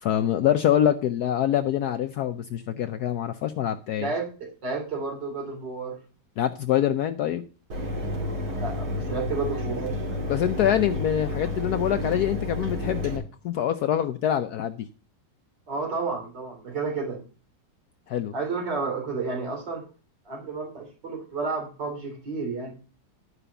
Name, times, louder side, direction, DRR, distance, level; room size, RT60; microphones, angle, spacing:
voice 1, 0.0-4.1 6.4-7.4 10.3-14.9 18.1-18.3, left 10 dB, 70° left, 8 dB, 1.1 m, -25 dB
voice 2, 4.0-6.0 8.6-10.0 15.7-17.2 18.3-19.8 20.3-22.7, right 4 dB, 75° right, 1 dB, 3.6 m, -31 dB
Mechanisms, 7.7-13.2, left 2 dB, 55° right, 3.1 m, -30 dB
11.0 x 5.0 x 6.9 m, 0.36 s
omnidirectional pair, 1.9 m